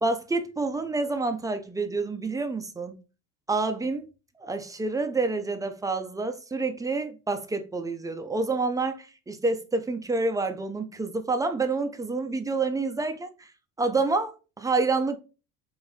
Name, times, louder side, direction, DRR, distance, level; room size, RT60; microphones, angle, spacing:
voice 1, 0.0-3.0 3.5-4.1 4.4-13.5 13.8-15.2, right 3 dB, 10° right, 0.4 m, -28 dB
3.7 x 2.6 x 3.2 m
hypercardioid pair, 75°, 44 cm